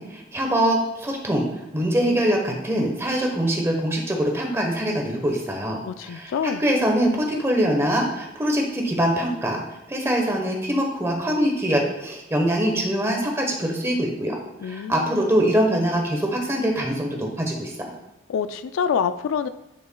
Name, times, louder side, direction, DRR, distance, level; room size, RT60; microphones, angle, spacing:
voice 1, 0.0-17.7, equal, 15° right, 1 dB, 1.0 m, -23 dB
voice 2, 5.8-6.6 14.6-15.3 18.3-19.5, left 7 dB, 70° left, 12 dB, 0.3 m, -26 dB
9.6 x 5.5 x 2.3 m, 0.92 s
head